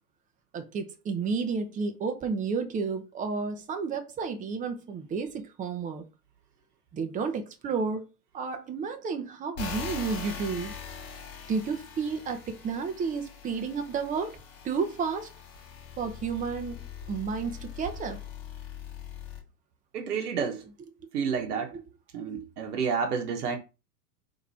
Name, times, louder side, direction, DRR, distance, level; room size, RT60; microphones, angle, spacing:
voice 1, 0.5-6.0 6.9-8.0 8.3-10.7 11.5-14.4 14.6-15.3 16.0-18.2, right 5 dB, 15° right, 0.7 m, -31 dB
sound 1, 9.6-19.4, left 7 dB, 45° left, 2.5 m, -42 dB
voice 2, 19.9-20.7 21.1-21.7 22.1-23.6, right 6 dB, 75° right, 1.2 m, -30 dB
4.1 x 3.0 x 4.1 m
hypercardioid pair, 110°, 47 cm